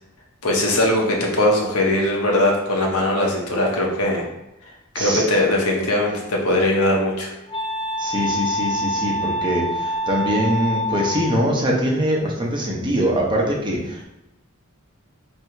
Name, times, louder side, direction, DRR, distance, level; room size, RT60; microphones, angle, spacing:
voice 1, 0.4-4.2 4.9-7.3, left 1 dB, 85° left, -1 dB, 1.0 m, -20 dB
Wind instrument woodwind instrument, 6.5-11.6, equal, 20° left, 0.5 m, -27 dB
voice 2, 8.0-14.1, equal, 20° right, -2 dB, 0.8 m, -23 dB
3.4 x 2.9 x 4.4 m, 0.88 s
head